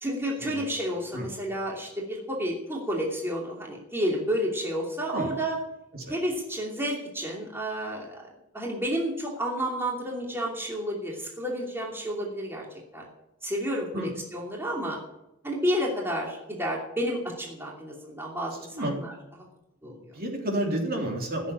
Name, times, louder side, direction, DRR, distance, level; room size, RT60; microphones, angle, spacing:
voice 1, 0.0-5.6 6.1-8.3 8.5-12.7 12.9-13.1 13.4-15.0 15.4-19.1 19.8-20.1, equal, 10° right, -3 dB, 2.7 m, -31 dB
voice 2, 19.8-21.5, right 1 dB, 45° right, 0 dB, 3.6 m, -31 dB
16.0 x 7.5 x 9.7 m, 0.88 s
head